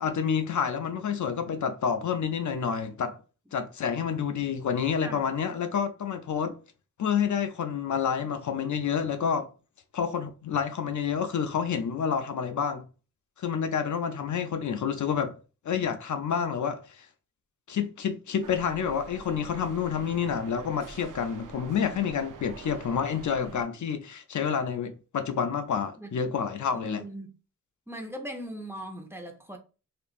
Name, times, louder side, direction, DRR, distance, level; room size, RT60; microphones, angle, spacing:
voice 1, 0.0-3.2 3.5-6.6 7.0-9.5 9.9-12.9 13.4-15.4 15.6-17.1 17.7-27.0, left 7 dB, 65° left, 0.5 m, -29 dB
sound 1, 18.4-23.6, right 5 dB, 70° right, 0.5 m, -46 dB
voice 2, 26.7-27.3 27.9-29.6, right 1 dB, 10° right, 0.7 m, -40 dB
2.9 x 2.4 x 2.4 m
cardioid pair, 55°, 32 cm